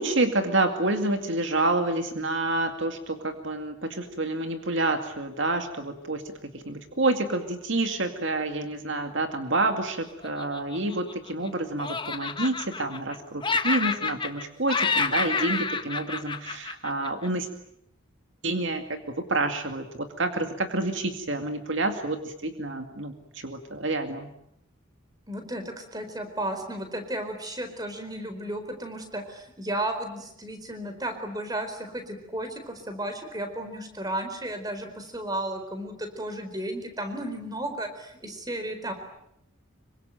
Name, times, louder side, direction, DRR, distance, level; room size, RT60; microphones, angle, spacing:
voice 1, 0.0-17.5 18.4-24.3, right 2 dB, 60° right, 6 dB, 2.3 m, -28 dB
Laughter, 10.2-11.5 11.8-13.2 13.4-14.4 14.7-17.3, left 4 dB, 20° left, 1.4 m, -29 dB
voice 2, 25.3-38.9, right 1 dB, 20° right, 7 dB, 4.4 m, -34 dB
26.5 x 24.5 x 9.1 m, 0.78 s
head